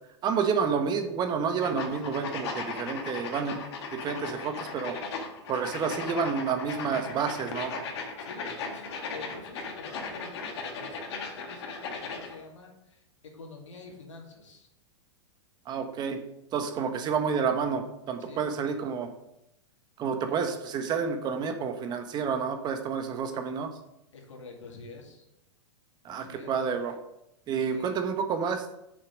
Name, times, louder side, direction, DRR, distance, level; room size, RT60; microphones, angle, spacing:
voice 1, 0.2-3.6 3.9-5.0 5.5-7.7 15.7-16.2 16.5-19.1 20.0-23.7 26.0-27.0 27.5-28.7, right 6 dB, 30° right, 6 dB, 1.1 m, -29 dB
sound 1, 1.6-12.4, left 4 dB, 60° left, 1.9 m, -37 dB
voice 2, 8.2-14.7 18.2-18.5 24.1-25.2 26.1-26.5 27.7-28.0, left 3 dB, 85° left, 0 dB, 2.5 m, -47 dB
6.5 x 6.1 x 5.1 m, 0.84 s
hypercardioid pair, 120°, 15 cm